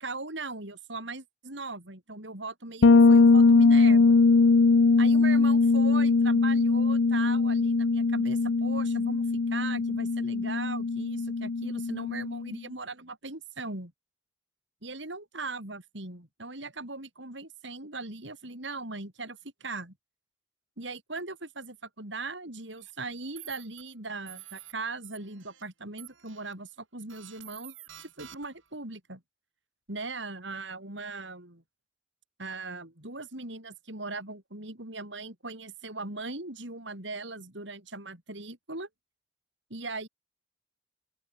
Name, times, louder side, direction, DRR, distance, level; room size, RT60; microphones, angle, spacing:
voice 1, 0.0-4.2 5.0-13.9 14.8-19.9 20.8-29.2 29.9-31.6 32.4-38.9 39.7-40.1, right 3 dB, 65° right, 5.0 m, -39 dB
Bass guitar, 2.8-12.5, left 4 dB, 70° left, 0.6 m, -21 dB
sound 1, 22.8-22.9 23.4-23.8 24.3-24.7 25.0-25.6 26.0-26.5 27.1-28.7, right 13 dB, 80° right, 7.1 m, -49 dB
open air
head